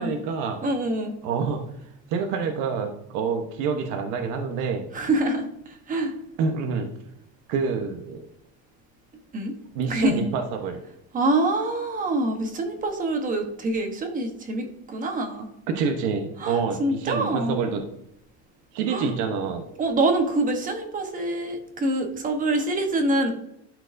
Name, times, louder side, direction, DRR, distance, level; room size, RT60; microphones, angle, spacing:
voice 1, 0.0-0.6 1.2-1.6 2.1-4.9 6.4-6.9 7.5-8.2 9.7-10.8 15.7-17.8 18.7-19.6, right 5 dB, 75° right, 4 dB, 1.0 m, -27 dB
voice 2, 0.6-1.1 4.9-6.1 9.3-9.5 9.9-10.2 11.1-15.5 16.4-17.6 18.9-19.1 19.8-23.3, right 2 dB, 25° right, 5 dB, 1.0 m, -25 dB
12.0 x 4.5 x 2.6 m, 0.78 s
cardioid pair, 155°, 31 cm